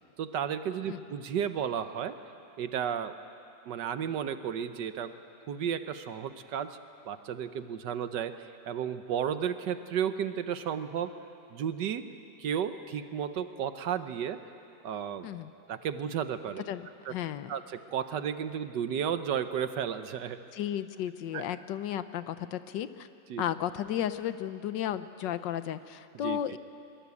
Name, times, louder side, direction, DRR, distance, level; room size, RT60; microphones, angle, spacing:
voice 1, 0.2-2.2 2.6-3.1 3.7-5.1 5.5-6.8 7.0-11.1 11.5-12.1 12.4-14.4 14.8-15.3 15.7-16.6 17.1-17.2 17.5-20.4 21.3-21.4 23.3-23.4 26.2-26.6, right 8 dB, 75° right, 10 dB, 1.5 m, -33 dB
voice 2, 16.7-17.6 20.5-23.1 23.4-26.6, left 10 dB, 80° left, 12 dB, 1.5 m, -34 dB
22.0 x 21.5 x 8.4 m, 2.6 s
omnidirectional pair, 1.9 m